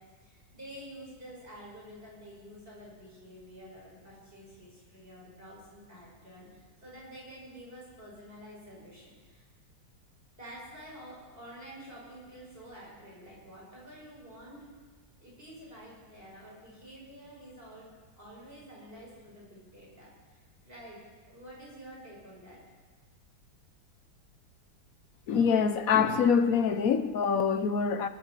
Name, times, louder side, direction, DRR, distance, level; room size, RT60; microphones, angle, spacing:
voice 1, 0.0-9.4 10.4-14.7 15.2-17.9 18.2-21.0 21.3-22.6, equal, 30° right, -5 dB, 6.5 m, -49 dB
voice 2, 25.3-28.1, left 6 dB, 60° left, 10 dB, 1.1 m, -25 dB
22.0 x 9.8 x 6.7 m, 1.4 s
omnidirectional pair, 2.0 m